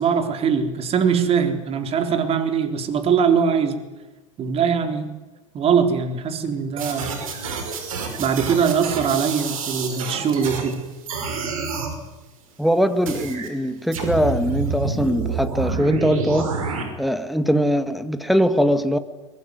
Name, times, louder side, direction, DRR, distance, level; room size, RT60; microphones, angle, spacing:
voice 1, 0.0-3.8 4.4-5.1 5.5-7.2 8.2-10.8, right 6 dB, 35° right, 3.9 m, -21 dB
sound 1, 6.8-10.7 11.1-11.9 13.1-13.5 13.9-16.8, right 5 dB, 80° right, 5.3 m, -28 dB
voice 2, 12.6-16.6 17.0-19.0, equal, ahead, 2.0 m, -21 dB
22.0 x 21.5 x 9.6 m
hypercardioid pair, 95°, 18 cm